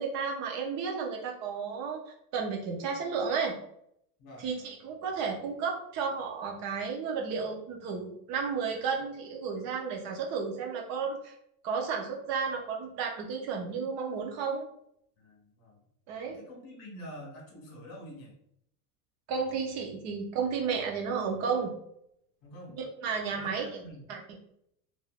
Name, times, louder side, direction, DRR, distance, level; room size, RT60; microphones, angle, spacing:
voice 1, 0.0-3.5 4.4-11.3 11.6-14.7 16.1-16.4 19.3-21.7 22.7-23.8 24.1-24.2, right 5 dB, 35° right, 1 dB, 0.6 m, -33 dB
voice 2, 15.2-15.8 16.3-18.4 22.4-22.8 23.3-24.0, equal, 45° left, -1 dB, 1.5 m, -47 dB
3.2 x 2.6 x 2.3 m, 0.71 s
supercardioid pair, 155°, 47 cm